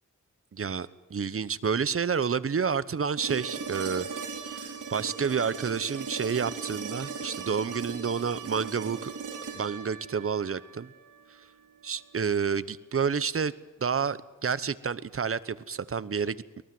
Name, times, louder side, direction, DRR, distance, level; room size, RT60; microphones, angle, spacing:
voice 1, 0.5-4.1 4.5-9.1 9.5-10.9 11.8-13.5 13.8-16.6, right 6 dB, 45° right, 17 dB, 1.1 m, -29 dB
sound 1, 3.2-11.2 13.4-13.5, right 5 dB, 80° right, 4.3 m, -38 dB
24.0 x 19.0 x 7.9 m, 1.1 s
cardioid pair, 75°, 30 cm